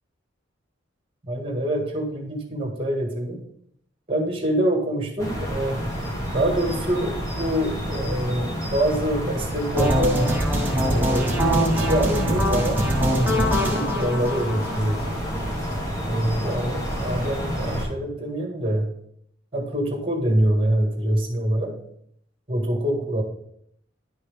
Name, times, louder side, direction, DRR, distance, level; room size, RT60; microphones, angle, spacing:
voice 1, 1.2-3.4 4.1-5.8 6.3-10.2 10.9-12.9 13.2-15.0 16.0-18.9 19.5-21.7 22.5-23.2, right 1 dB, 30° right, 1 dB, 1.7 m, -25 dB
sound 1, 5.2-17.9, equal, 20° left, 1.6 m, -29 dB
sound 2, 9.8-15.7, equal, 10° right, 1.1 m, -23 dB
10.0 x 5.4 x 3.4 m, 0.69 s
head